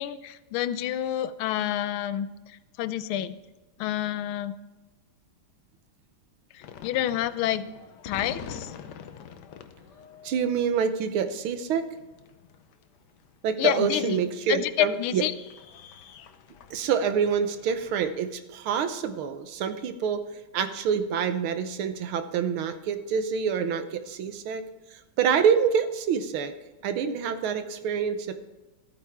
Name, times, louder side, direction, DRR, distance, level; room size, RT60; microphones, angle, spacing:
voice 1, 0.0-2.3 2.8-3.4 3.8-4.5 6.5-7.6 8.0-8.7 13.6-14.2 14.5-15.3, left 11 dB, 85° left, 14 dB, 1.5 m, -28 dB
sound 1, 6.6-18.1, left 7 dB, 65° left, 1.2 m, -46 dB
voice 2, 10.2-11.9 13.4-15.2 16.7-20.2 20.5-24.6 24.9-26.5 26.8-28.3, right 7 dB, 80° right, 9 dB, 1.7 m, -26 dB
14.0 x 8.9 x 3.6 m, 1.2 s
omnidirectional pair, 2.3 m